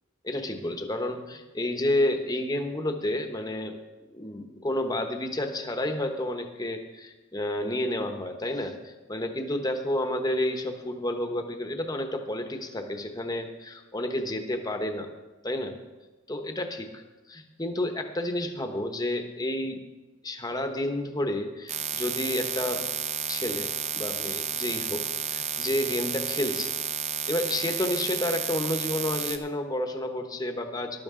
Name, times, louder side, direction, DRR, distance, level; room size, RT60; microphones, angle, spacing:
voice 1, 0.2-3.8 4.1-15.1 15.4-15.8 16.3-17.0 17.3-19.8 20.2-22.8 23.3-26.7 27.3-31.0, left 1 dB, 20° left, 5 dB, 1.0 m, -30 dB
sound 1, 21.7-29.4, right 8 dB, 30° right, 0.7 m, -31 dB
14.5 x 12.0 x 3.7 m, 1.2 s
head